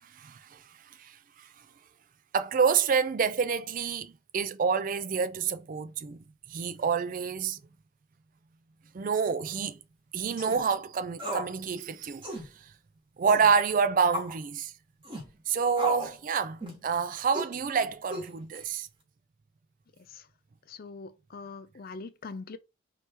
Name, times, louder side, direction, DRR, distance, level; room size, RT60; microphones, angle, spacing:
voice 1, 0.2-0.6 1.0-1.1 2.3-6.2 6.5-7.6 8.9-9.8 10.1-12.2 13.2-14.7 15.5-18.9, right 6 dB, 40° right, 0.3 m, -28 dB
sound 1, 10.3-10.6 11.2-11.5 11.8-11.9 12.2-12.5 13.2-13.5 14.1-14.4 15.0-15.3 15.8-16.1 16.6-16.9 17.3-17.5 18.1-18.6, right 1 dB, 25° right, 1.3 m, -35 dB
voice 2, 20.7-22.6, left 4 dB, 45° left, 0.4 m, -42 dB
3.3 x 2.9 x 4.4 m
head